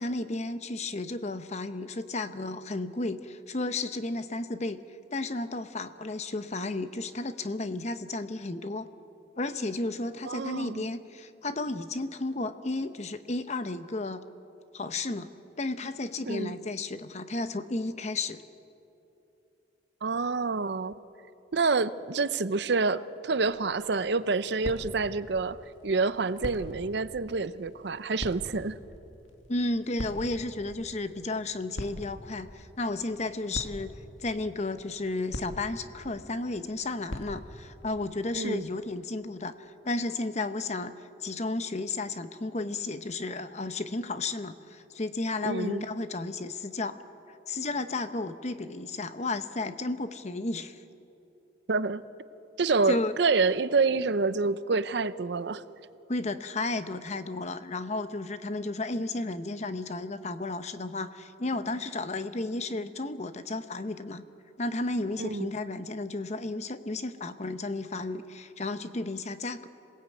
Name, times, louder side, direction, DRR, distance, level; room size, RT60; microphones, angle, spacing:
voice 1, 0.0-4.8 5.1-8.9 9.4-14.3 14.7-15.3 15.6-18.4 29.5-33.9 34.2-40.9 41.2-47.0 47.5-50.8 52.9-53.1 56.1-64.2 64.6-69.7, left 2 dB, 35° left, 11 dB, 0.8 m, -33 dB
voice 2, 10.2-10.9 16.3-16.6 20.0-20.9 21.5-25.6 25.8-28.7 38.3-38.7 45.4-45.8 51.7-52.0 52.6-55.6 65.2-65.5, right 4 dB, 60° right, 15 dB, 0.6 m, -27 dB
sound 1, 23.4-37.9, equal, 80° left, 2.0 m, -44 dB
26.5 x 18.0 x 8.5 m, 3.0 s
head